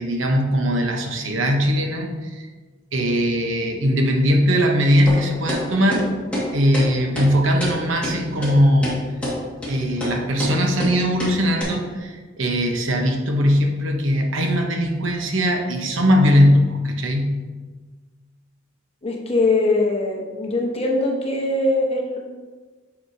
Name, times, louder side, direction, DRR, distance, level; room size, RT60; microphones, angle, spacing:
voice 1, 0.0-2.5 2.9-6.1 6.5-9.1 9.7-17.4, equal, 80° right, 3 dB, 0.9 m, -20 dB
sound 1, 5.1-5.2 5.5-5.6 5.9-6.0 6.3-6.5 6.7-6.9 7.2-7.3 7.6-7.7 8.0-8.1 8.4-8.5 8.8-9.0 9.2-9.4 9.6-9.7 10.0-10.1 10.4-10.5 10.8-10.9 11.2-11.3 11.6-11.7, equal, 5° left, 1.8 m, -26 dB
voice 2, 19.0-22.2, left 2 dB, 30° left, 0 dB, 1.0 m, -21 dB
8.5 x 4.9 x 2.7 m, 1.3 s
head